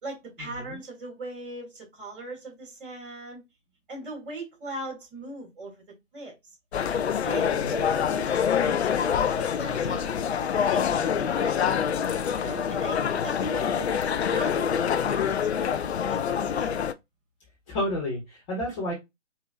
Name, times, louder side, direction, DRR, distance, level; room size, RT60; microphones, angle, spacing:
voice 1, 0.0-3.4 3.9-6.3 6.8-7.0 7.2-10.1 10.5-11.8 12.3-16.8, right 2 dB, 45° right, 1 dB, 2.7 m, -40 dB
sound 1, 6.7-16.9, left 8 dB, 60° left, 0.5 m, -26 dB
voice 2, 17.7-18.9, left 1 dB, 25° left, -1 dB, 1.3 m, -31 dB
5.0 x 2.7 x 2.5 m, 0.20 s
figure-of-eight pair, 135°, 38 cm